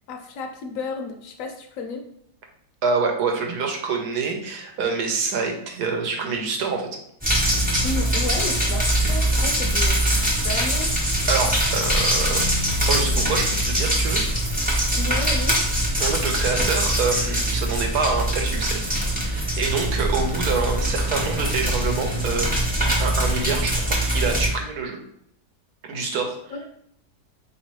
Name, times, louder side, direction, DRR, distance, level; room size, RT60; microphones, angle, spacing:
voice 1, 0.1-2.0 7.8-11.0 15.0-15.6 26.5-26.7, left 4 dB, 65° left, 5 dB, 0.9 m, -32 dB
voice 2, 2.8-6.9 11.3-12.4 12.9-14.2 16.0-22.5 23.0-25.0 25.8-26.4, right 4 dB, 75° right, 3 dB, 1.2 m, -26 dB
sound 1, 7.2-24.5, right 1 dB, 10° right, 0.4 m, -22 dB
4.2 x 3.0 x 3.0 m, 0.73 s
omnidirectional pair, 1.7 m